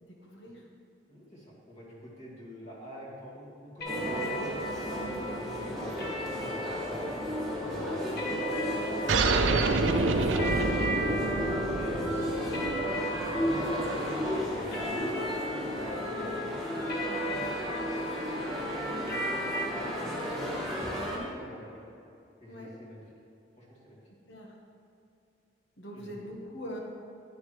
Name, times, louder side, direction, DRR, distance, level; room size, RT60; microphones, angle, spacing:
voice 1, 0.0-0.6 5.0-5.3 6.5-6.6 16.2-16.3 17.1-17.3 21.1-21.3 22.5-22.7 24.3-24.6 25.8-26.8, equal, 75° left, -1 dB, 1.3 m, -43 dB
voice 2, 1.1-5.9 6.2-7.1 7.9-9.2 11.7-12.9 13.2-17.8 18.2-20.5 21.4-21.8 22.4-23.0 23.6-24.0 25.9-26.3, equal, 35° left, -5 dB, 2.2 m, -46 dB
sound 1, 3.8-19.6, equal, 55° left, 1.3 m, -38 dB
sound 2, 3.8-21.2, equal, ahead, 1.8 m, -33 dB
sound 3, 9.1-14.1, right 3 dB, 90° right, 0.6 m, -28 dB
10.5 x 9.6 x 3.2 m, 2.5 s
head